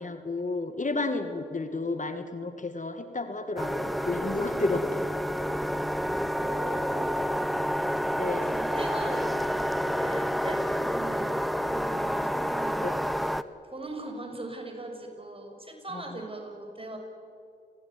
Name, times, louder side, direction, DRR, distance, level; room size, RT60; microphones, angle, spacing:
voice 1, 0.0-4.8 8.2-8.6 12.8-12.9, left 3 dB, 45° left, 8 dB, 2.0 m, -31 dB
sound 1, 3.6-13.4, equal, ahead, 1.0 m, -29 dB
voice 2, 6.4-7.2 8.4-12.9 13.2-17.0, right 2 dB, 30° right, 2 dB, 6.9 m, -40 dB
30.0 x 17.5 x 9.5 m, 2.5 s
cardioid pair, 45°, 19 cm